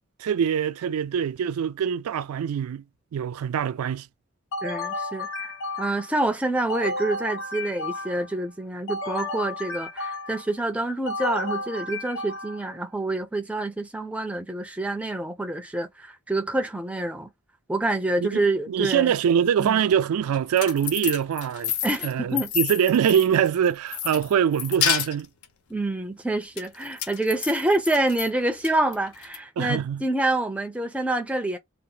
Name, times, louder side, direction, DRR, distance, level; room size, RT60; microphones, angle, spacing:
voice 1, 0.2-2.8 3.1-4.1 18.2-21.7 22.0-25.3 29.6-30.0, right 8 dB, 85° right, 0.3 m, -24 dB
sound 1, 4.5-6.2 6.7-8.4 8.9-10.5 11.1-12.8, left 2 dB, 70° left, 1.0 m, -32 dB
voice 2, 4.6-5.5 5.8-17.3 17.7-19.1 19.6-19.8 21.8-22.5 25.7-31.6, right 2 dB, 5° right, 0.4 m, -27 dB
sound 2, 20.3-23.5 23.9-25.4 26.6-28.3 28.6-29.4, left 9 dB, 90° left, 0.6 m, -29 dB
2.7 x 2.0 x 3.7 m
head